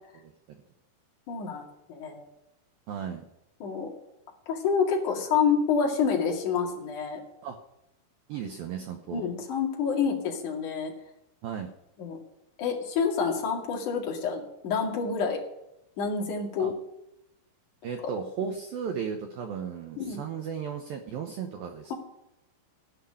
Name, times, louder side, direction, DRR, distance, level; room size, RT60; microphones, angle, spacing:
voice 1, 0.2-0.6 2.9-3.2 7.4-7.6 8.3-9.3 11.4-11.7 16.6-16.7 17.8-21.9, right 7 dB, 85° right, 5 dB, 2.0 m, -35 dB
voice 2, 1.3-1.6 1.9-2.3 3.6-3.9 4.5-7.2 9.1-10.9 12.0-12.2 12.6-15.4 16.0-16.7 20.0-20.2, left 6 dB, 50° left, -1 dB, 3.1 m, -28 dB
15.5 x 5.9 x 9.9 m, 0.87 s
omnidirectional pair, 5.6 m